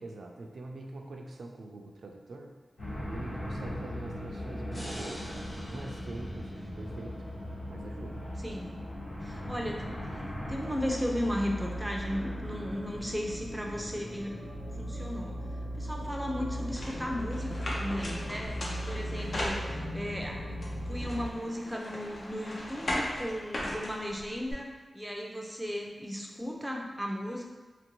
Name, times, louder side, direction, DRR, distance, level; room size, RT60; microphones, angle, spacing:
voice 1, 0.0-2.5 3.1-7.2 7.7-8.2, right 2 dB, 75° right, 2 dB, 0.3 m, -44 dB
sound 1, 2.8-21.3, equal, 90° left, 1.4 m, -38 dB
sound 2, 4.7-7.9, equal, 30° left, 0.8 m, -46 dB
voice 2, 8.4-8.8 9.2-14.4 14.8-15.4 15.8-20.6 20.9-27.4, equal, 5° right, 0 dB, 0.4 m, -35 dB
sound 3, 16.8-20.1 20.6-24.5, left 1 dB, 60° left, 0.6 m, -38 dB
2.9 x 2.5 x 3.0 m, 1.3 s
wide cardioid pair, 95°, 0 cm